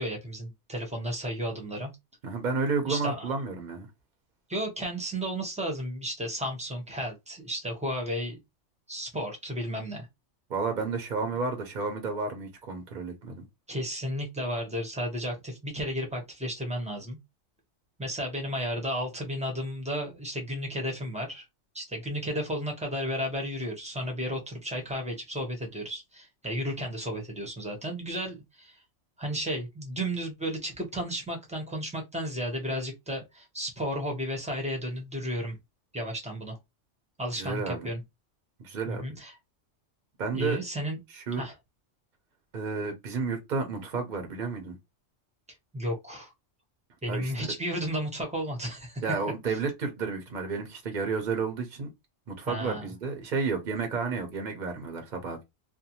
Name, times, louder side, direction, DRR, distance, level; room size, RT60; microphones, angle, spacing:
voice 1, 0.0-1.9 2.8-3.3 4.5-8.4 8.9-10.1 13.7-17.2 18.0-21.4 21.7-28.8 29.2-35.6 35.9-36.6 37.2-38.0 38.9-39.4 40.3-41.0 41.4-41.5 45.7-46.3 47.0-49.0 52.4-52.9, equal, 5° right, 0.6 m, -33 dB
voice 2, 2.2-3.9 10.5-13.5 37.4-37.9 38.6-39.1 40.2-40.6 41.1-41.4 42.5-44.7 47.1-47.3 49.0-51.9 52.3-55.4, right 4 dB, 50° right, 0.7 m, -31 dB
2.5 x 2.2 x 2.8 m
omnidirectional pair, 1.2 m